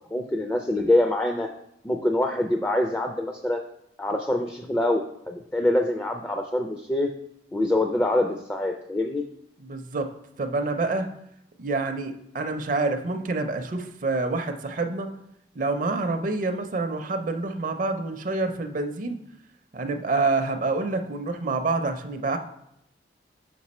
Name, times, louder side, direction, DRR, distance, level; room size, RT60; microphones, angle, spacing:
voice 1, 0.1-1.5 1.8-3.6 4.0-7.1 7.5-9.2, left 1 dB, 10° left, 4 dB, 0.4 m, -25 dB
voice 2, 9.6-10.1 10.4-11.1 11.6-15.1 15.6-19.2 19.7-22.4, right 3 dB, 50° right, 7 dB, 0.5 m, -27 dB
6.0 x 4.7 x 4.2 m, 0.77 s
head